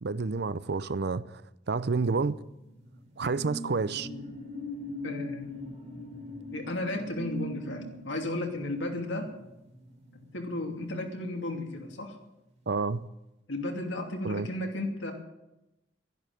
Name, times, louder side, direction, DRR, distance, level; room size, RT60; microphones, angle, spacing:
voice 1, 0.0-1.4 1.7-2.4 3.2-4.1 12.7-13.1 14.2-14.5, right 4 dB, 60° right, 0.6 m, -29 dB
sound 1, 2.3-11.3 11.6-11.9, left 1 dB, 40° right, 3.7 m, -42 dB
voice 2, 5.0-5.6 6.5-9.3 10.3-12.1 13.5-15.1, left 1 dB, 85° left, 2.7 m, -34 dB
12.0 x 11.0 x 9.1 m
head